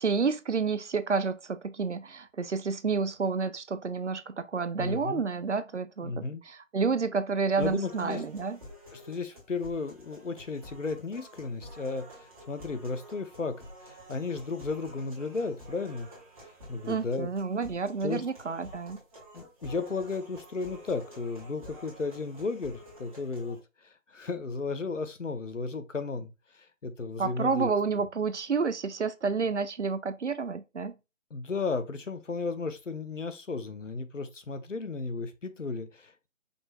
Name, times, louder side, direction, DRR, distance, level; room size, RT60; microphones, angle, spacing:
voice 1, 0.0-8.6 16.9-19.0 27.2-30.9, right 5 dB, 60° right, 0.5 m, -30 dB
voice 2, 4.8-5.2 6.0-6.4 7.6-8.3 8.9-13.5 13.8-16.1 16.7-17.3 18.0-18.2 19.3-23.6 24.1-27.7 31.3-36.3, left 4 dB, 65° left, 0.8 m, -34 dB
sound 1, 7.6-23.6, equal, 25° right, 1.6 m, -50 dB
5.2 x 3.1 x 2.2 m
figure-of-eight pair, 160°, 40 cm